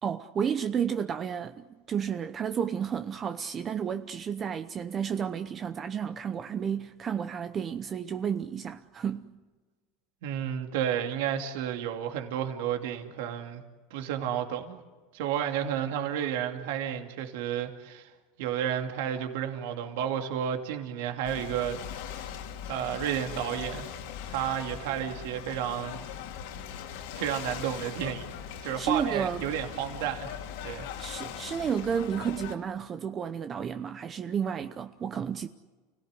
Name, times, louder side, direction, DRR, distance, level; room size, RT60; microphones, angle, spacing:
voice 1, 0.0-9.2 28.8-29.4 31.0-35.5, right 7 dB, 25° right, 0.8 m, -32 dB
voice 2, 10.2-13.6 13.9-14.8 15.1-18.1 18.4-21.8 22.1-22.3 22.7-23.8 24.3-26.0 27.2-28.3 28.6-30.3 30.6-30.9, right 9 dB, 75° right, 2.6 m, -31 dB
Ocean / Boat Water vehicle, 21.2-32.5, left 8 dB, 70° left, 2.6 m, -40 dB
30.0 x 17.5 x 9.8 m
supercardioid pair, 145°, 0 cm